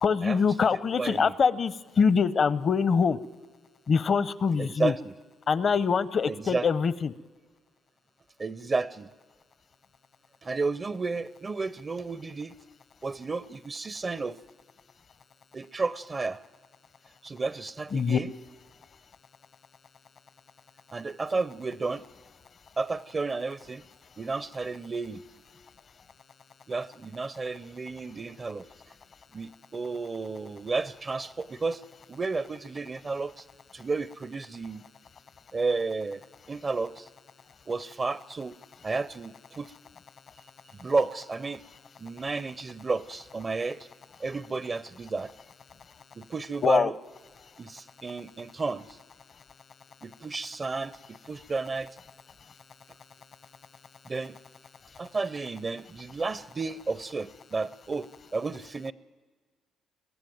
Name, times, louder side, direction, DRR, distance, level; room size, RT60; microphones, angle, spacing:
voice 1, 0.0-3.2 3.9-4.9 5.5-7.1 17.9-18.2 40.3-40.4 45.8-46.0 46.6-46.9 47.4-47.6 49.3-49.4 52.4-52.6 54.8-55.0, left 5 dB, 50° left, 19 dB, 0.7 m, -25 dB
voice 2, 1.0-1.3 4.6-5.1 6.3-6.6 8.4-9.1 10.4-12.6 13.0-14.4 15.5-16.4 17.2-18.3 20.9-22.0 22.8-23.8 24.2-25.2 26.7-28.7 29.3-31.8 32.1-33.5 33.7-34.8 35.5-36.2 36.5-37.1 37.7-38.6 38.8-39.7 40.8-41.6 42.0-43.9 44.2-45.3 46.2-46.9 47.6-49.0 50.0-52.0 54.1-54.4 55.0-58.9, right 3 dB, 35° right, 18 dB, 0.5 m, -32 dB
22.0 x 14.5 x 9.2 m, 1.5 s
cardioid pair, 90°, 0 cm